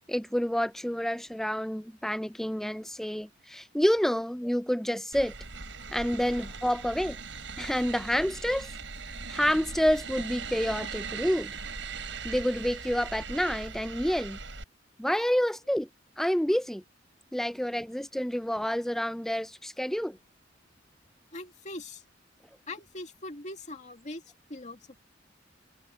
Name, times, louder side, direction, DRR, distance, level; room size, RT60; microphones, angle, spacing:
voice 1, 0.1-5.3 5.9-7.2 7.6-8.7 9.3-11.6 12.2-14.4 15.0-15.9 16.2-16.8 17.3-20.2, equal, ahead, 0.5 m, -28 dB
sound 1, 5.1-14.6, right 5 dB, 75° right, 7.1 m, -40 dB
voice 2, 21.3-22.0 22.7-24.2 24.5-25.0, left 2 dB, 40° left, 2.3 m, -41 dB
head